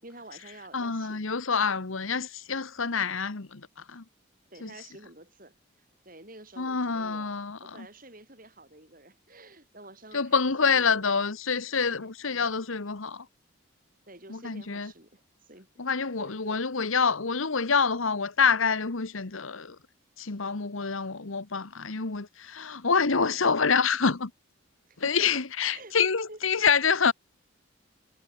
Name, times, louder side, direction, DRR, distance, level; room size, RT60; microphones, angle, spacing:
voice 1, 0.0-1.3 4.5-11.1 11.8-12.5 14.1-15.7 16.2-16.6 24.9-25.2 25.6-26.0 26.3-26.6, right 2 dB, 40° right, 7.4 m, -50 dB
voice 2, 0.7-4.0 4.6-4.7 6.6-7.7 10.1-13.2 14.3-14.9 15.8-19.8 20.2-24.3 25.0-27.1, left 5 dB, 80° left, 1.3 m, -27 dB
head